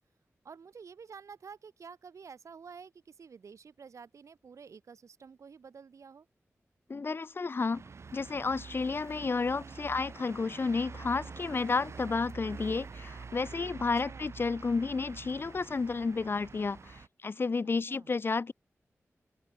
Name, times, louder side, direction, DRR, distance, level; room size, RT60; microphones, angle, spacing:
voice 1, 0.4-6.3 13.8-14.3 17.9-18.1, right 6 dB, 80° right, 6.7 m, -50 dB
voice 2, 6.9-7.8 8.1-18.5, left 4 dB, 45° left, 0.8 m, -31 dB
sound 1, 7.7-17.1, right 4 dB, 60° right, 6.6 m, -46 dB
open air
wide cardioid pair, 90°, 5 cm